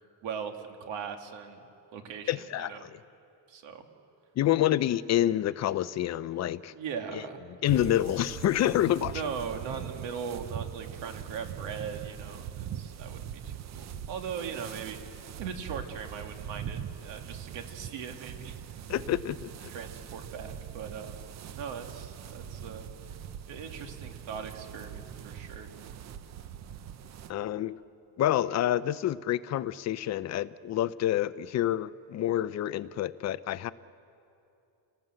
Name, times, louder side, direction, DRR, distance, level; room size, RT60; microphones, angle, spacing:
voice 1, 0.2-1.6 1.9-2.9 3.5-3.9 6.7-7.4 9.0-18.6 19.7-21.2 21.5-22.9 23.5-25.7, right 6 dB, 75° right, 5 dB, 2.3 m, -39 dB
voice 2, 2.3-3.0 4.4-6.7 7.1-7.2 7.6-9.2 18.9-19.7 27.3-27.8 28.2-33.7, left 12 dB, 40° left, 15 dB, 0.5 m, -28 dB
sound 1, 7.6-27.3, right 9 dB, 40° right, 0.5 m, -42 dB
29.0 x 18.0 x 7.8 m, 2.7 s
cardioid pair, 180°, 45 cm